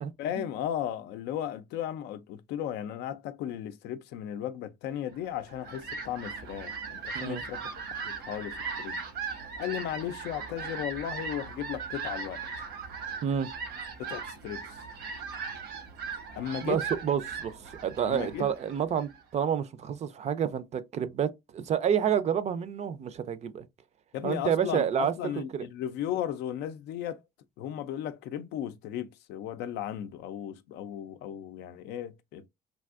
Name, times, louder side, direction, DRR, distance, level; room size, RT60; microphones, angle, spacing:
voice 1, 0.2-9.0 9.6-12.4 14.0-14.9 16.4-16.8 18.0-18.5 24.1-27.2 27.6-32.5, left 10 dB, 80° left, 0.4 m, -35 dB
Fowl, 5.3-19.2, right 5 dB, 85° right, 0.9 m, -39 dB
voice 2, 13.2-13.5 16.6-23.7 24.2-25.7, right 8 dB, 40° right, 0.4 m, -29 dB
3.4 x 2.6 x 2.4 m
cardioid pair, 110°, 17 cm